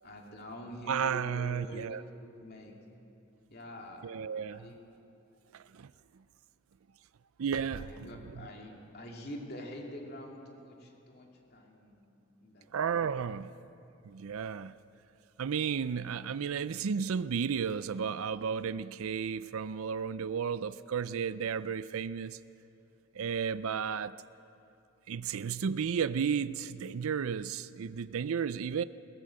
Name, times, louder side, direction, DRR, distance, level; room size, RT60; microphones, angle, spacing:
voice 1, 0.0-2.7 3.5-4.1 4.5-4.8 7.7-12.1 12.4-13.0, equal, 45° left, 2.7 m, -46 dB
voice 2, 0.9-2.0 4.0-4.7 5.5-5.9 7.4-8.4 12.7-13.5 14.0-14.7 15.4-22.4 23.2-24.1 25.1-28.8, right 7 dB, 70° right, 0.4 m, -33 dB
21.5 x 16.0 x 7.7 m
head